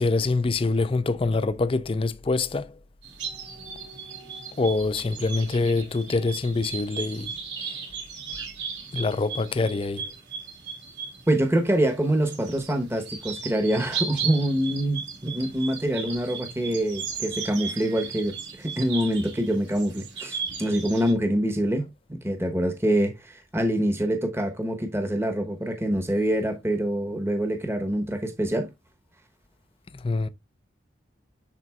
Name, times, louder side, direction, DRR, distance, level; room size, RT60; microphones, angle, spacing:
voice 1, 0.0-2.7 4.6-7.3 7.6-7.8 8.9-10.1 29.9-30.3, left 3 dB, 30° left, 0.4 m, -25 dB
sound 1, 3.0-21.1, right 6 dB, 75° right, 2.3 m, -36 dB
voice 2, 11.3-28.7, right 1 dB, 15° right, 0.9 m, -25 dB
10.5 x 3.9 x 2.3 m
head